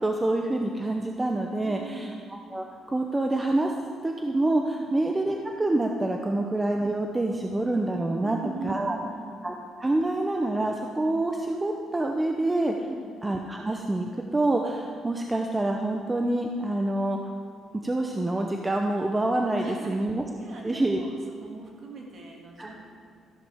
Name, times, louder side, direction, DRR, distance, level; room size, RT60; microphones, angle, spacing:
voice 1, 0.0-2.1 2.5-3.7 4.0-8.4 8.6-9.0 9.4-9.5 9.8-12.7 13.2-17.2 17.8-20.2 20.6-21.0 22.6-22.7, right 2 dB, 15° right, 2 dB, 0.6 m, -26 dB
voice 2, 1.6-2.2 4.8-4.9 8.2-9.3 12.8-13.1 19.6-20.0 20.4-21.1 21.4-22.7, right 3 dB, 45° right, -1 dB, 2.1 m, -40 dB
13.5 x 11.5 x 3.5 m, 2.1 s
cardioid pair, 145°, 0 cm